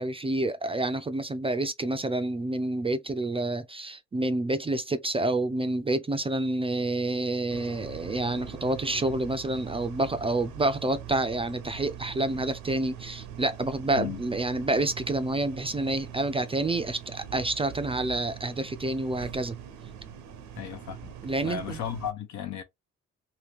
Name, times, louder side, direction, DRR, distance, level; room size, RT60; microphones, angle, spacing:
voice 1, 0.0-19.6 21.2-21.8, right 2 dB, 20° right, 0.4 m, -28 dB
sound 1, 7.5-22.1, right 9 dB, 85° right, 0.8 m, -42 dB
voice 2, 20.6-21.1 21.4-22.6, left 9 dB, 70° left, 0.9 m, -35 dB
2.8 x 2.8 x 3.4 m
cardioid pair, 90°, 30 cm